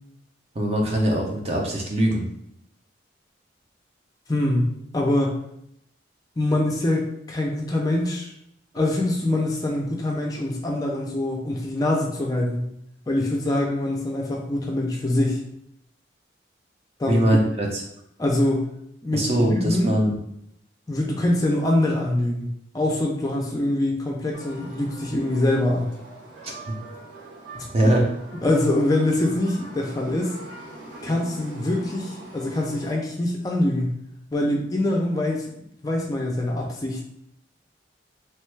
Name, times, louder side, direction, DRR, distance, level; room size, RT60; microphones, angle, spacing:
voice 1, 0.6-2.3 17.1-17.8 19.1-20.2 26.4-26.7 27.7-28.1, right 1 dB, 35° right, 0 dB, 0.6 m, -22 dB
voice 2, 4.3-4.6 4.9-5.4 6.4-8.3 8.7-12.7 13.1-15.4 17.0-17.2 18.2-18.7 19.0-19.9 20.9-22.5 22.7-25.9 27.5-27.9 28.4-30.4 31.0-33.9 34.3-35.5 35.8-37.0, left 1 dB, 20° left, -1 dB, 0.4 m, -24 dB
sound 1, 24.3-33.0, right 2 dB, 80° right, 1.3 m, -42 dB
3.0 x 2.2 x 3.1 m, 0.75 s
head